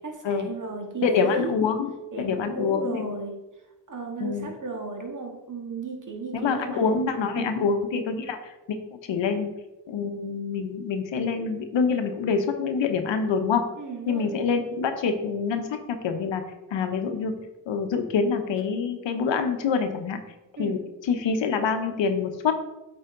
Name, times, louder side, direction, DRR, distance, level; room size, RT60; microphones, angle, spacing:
voice 1, 0.0-1.5 2.1-3.4 3.9-7.7 13.8-14.3 20.6-20.9, right 3 dB, 40° right, 1 dB, 1.9 m, -35 dB
voice 2, 1.0-3.1 4.2-4.5 6.3-8.5 8.9-9.5 9.9-13.7 14.1-15.8 16.0-16.4 16.7-17.4 17.7-20.2 20.6-22.5, left 5 dB, 70° left, 7 dB, 1.0 m, -26 dB
8.3 x 4.3 x 3.8 m, 1.0 s
supercardioid pair, 50°, 46 cm